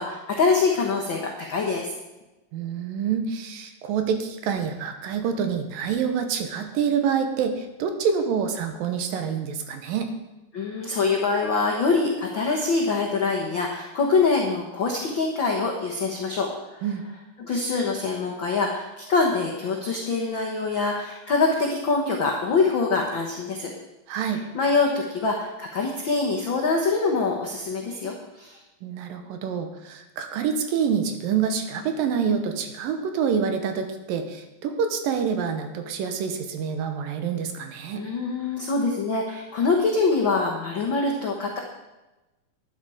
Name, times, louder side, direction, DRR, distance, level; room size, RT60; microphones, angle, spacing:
voice 1, 0.0-1.9 10.5-16.9 17.4-23.7 24.5-28.6 37.9-41.6, left 4 dB, 70° left, 0 dB, 1.1 m, -24 dB
voice 2, 2.5-10.1 16.8-17.0 24.1-24.4 28.8-38.0, right 7 dB, 80° right, 7 dB, 2.7 m, -27 dB
11.5 x 10.0 x 4.9 m, 1.1 s
omnidirectional pair, 4.1 m